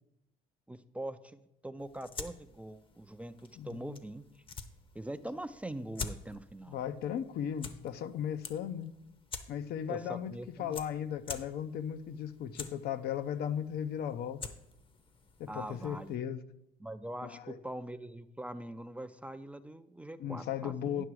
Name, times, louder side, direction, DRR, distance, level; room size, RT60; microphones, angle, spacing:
voice 1, 0.7-4.2 4.9-6.8 9.9-10.8 15.5-16.2 16.8-21.0, right 1 dB, 10° right, 0.4 m, -43 dB
sound 1, 1.8-16.2, left 4 dB, 30° left, 0.8 m, -48 dB
voice 2, 3.6-4.0 6.7-8.9 9.5-10.3 10.6-14.4 15.4-16.4 17.2-17.6 20.2-21.0, left 9 dB, 70° left, 0.6 m, -36 dB
10.0 x 5.9 x 4.7 m
cardioid pair, 110°, 17 cm